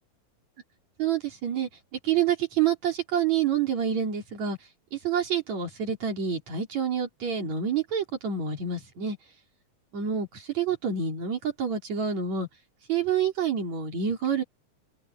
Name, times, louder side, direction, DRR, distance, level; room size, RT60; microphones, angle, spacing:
voice 1, 1.0-1.7 2.0-4.6 4.9-9.2 9.9-12.5 12.9-14.4, right 7 dB, 50° right, 4.8 m, -27 dB
omnidirectional pair, 4.1 m